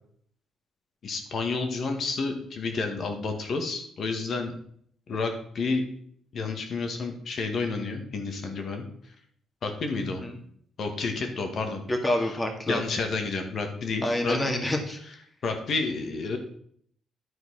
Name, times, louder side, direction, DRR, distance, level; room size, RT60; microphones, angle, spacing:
voice 1, 1.0-4.6 5.1-5.8 6.3-8.8 9.6-10.2 10.8-11.8 12.2-12.3 12.7-14.4 15.4-16.4, left 4 dB, 55° left, 5 dB, 1.9 m, -30 dB
voice 2, 11.9-12.8 14.0-15.0, left 1 dB, 20° left, 4 dB, 2.0 m, -27 dB
11.5 x 4.5 x 5.8 m, 0.64 s
cardioid pair, 90°, 0 cm